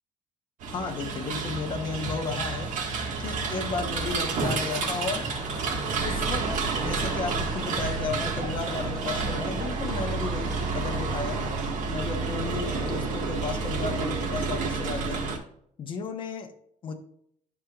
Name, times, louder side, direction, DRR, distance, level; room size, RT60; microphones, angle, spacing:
sound 1, 0.6-15.4, right 4 dB, 70° right, 1.8 m, -30 dB
voice 1, 0.7-2.7 3.2-5.2 6.0-6.5 6.8-11.4 11.9-15.2 15.8-16.5 16.8-16.9, left 4 dB, 40° left, 2 dB, 1.2 m, -33 dB
sound 2, 3.8-11.1, equal, ahead, 2.3 m, -41 dB
12.0 x 6.0 x 2.5 m, 0.67 s
cardioid pair, 175°, 14 cm